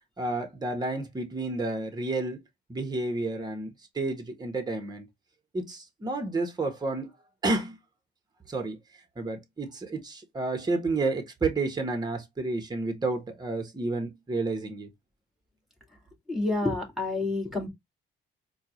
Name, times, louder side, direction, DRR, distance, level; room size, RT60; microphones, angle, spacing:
voice 1, 0.2-2.4 2.7-5.1 5.5-7.1 7.4-7.8 8.5-8.8 9.2-14.9, right 2 dB, 20° right, 1.2 m, -30 dB
voice 2, 16.3-17.7, left 2 dB, ahead, 2.3 m, -28 dB
4.4 x 2.4 x 3.1 m
cardioid pair, 90°, 20 cm